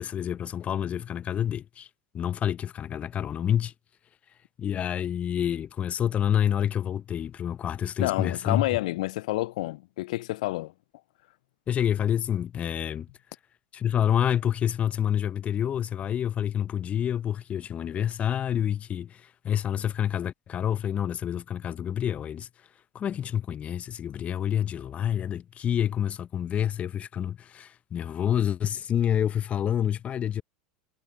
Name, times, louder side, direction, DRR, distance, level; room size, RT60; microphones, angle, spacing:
voice 1, 0.0-1.9 2.1-3.7 4.6-8.7 11.7-13.1 13.7-22.5 22.9-30.4, left 9 dB, 35° left, 0.8 m, -28 dB
voice 2, 8.0-10.7, left 18 dB, 70° left, 0.4 m, -29 dB
hypercardioid pair, 90°, 4 cm